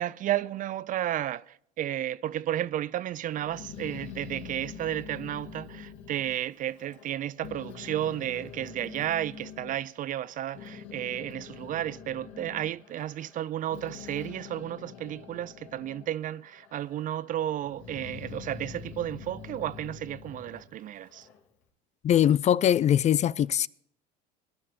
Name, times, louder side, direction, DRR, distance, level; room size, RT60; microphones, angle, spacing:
voice 1, 0.0-21.3, right 12 dB, 40° right, 0.5 m, -33 dB
Growling, 3.3-7.1 7.4-9.7 10.3-16.1 16.5-17.2 17.6-21.4, left 7 dB, 60° left, 2.6 m, -45 dB
voice 2, 22.0-23.7, left 10 dB, 35° left, 0.4 m, -22 dB
22.0 x 11.0 x 2.9 m
hypercardioid pair, 85°, 21 cm